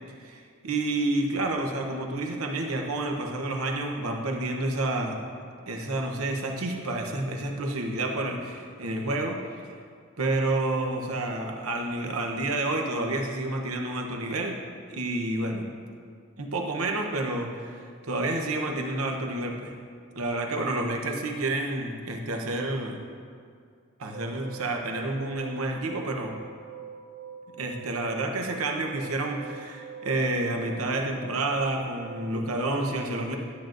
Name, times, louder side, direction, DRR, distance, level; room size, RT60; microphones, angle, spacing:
voice 1, 0.2-5.2 5.7-9.4 10.2-14.6 14.9-15.7 16.4-19.7 20.2-23.0 24.0-26.3 27.6-33.4, right 2 dB, 90° right, 2 dB, 0.9 m, -29 dB
sound 1, 24.1-32.5, right 6 dB, 70° right, 0.4 m, -44 dB
11.5 x 7.4 x 2.6 m, 2.2 s
head